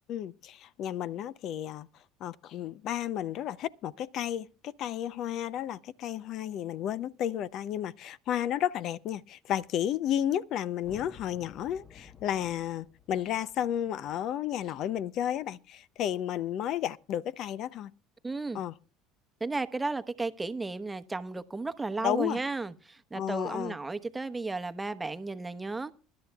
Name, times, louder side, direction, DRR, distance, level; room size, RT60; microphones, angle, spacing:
voice 1, 0.1-1.9 2.2-17.9 18.5-18.7 22.0-22.4 23.1-23.7, left 10 dB, 55° left, 0.5 m, -32 dB
sound 1, 10.8-15.2, left 5 dB, 35° left, 1.1 m, -54 dB
voice 2, 18.2-18.6 19.4-25.9, right 3 dB, 15° right, 1.0 m, -34 dB
25.0 x 11.5 x 2.3 m
hypercardioid pair, 80°, 0 cm